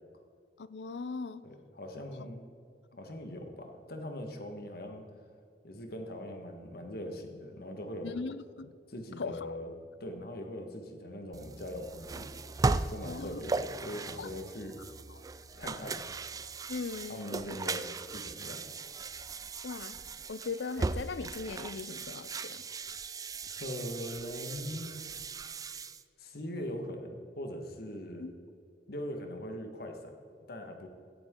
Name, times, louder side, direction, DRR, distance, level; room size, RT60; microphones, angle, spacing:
voice 1, 0.6-1.4 8.0-8.7 9.2-9.6 13.1-13.4 14.2-14.3 16.7-17.6 19.6-19.9 20.3-22.6 28.2-28.3, left 4 dB, 80° left, 15 dB, 0.6 m, -39 dB
voice 2, 1.4-2.4 2.9-5.0 5.6-8.2 8.9-9.7 10.0-12.3 12.9-14.8 15.6-16.0 17.1-18.6 23.5-24.9 26.2-28.3 28.9-30.1 30.5-30.9, equal, 60° left, 4 dB, 1.6 m, -41 dB
sound 1, 11.3-26.0, right 3 dB, 20° right, 0.3 m, -37 dB
16.5 x 10.5 x 3.8 m, 2.3 s
head